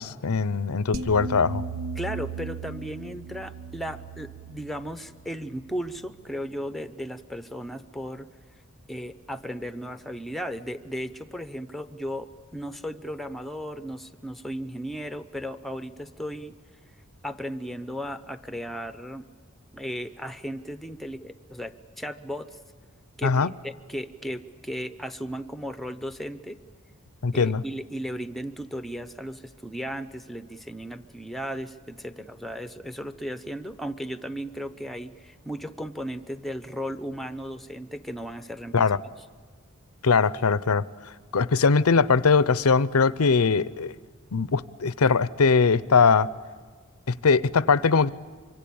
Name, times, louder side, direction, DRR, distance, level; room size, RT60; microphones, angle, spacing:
voice 1, 0.0-1.6 23.2-23.5 27.2-27.6 38.7-39.0 40.0-40.8 41.3-43.9 44.3-46.3 47.1-48.1, left 5 dB, 80° left, 17 dB, 0.7 m, -21 dB
sound 1, 0.9-6.2, right 4 dB, 65° right, 1.1 m, -37 dB
voice 2, 2.0-8.3 8.9-16.6 17.2-19.3 19.7-22.6 23.2-26.6 27.3-38.9, equal, ahead, 10 dB, 0.8 m, -35 dB
24.5 x 24.5 x 8.6 m, 1.5 s
head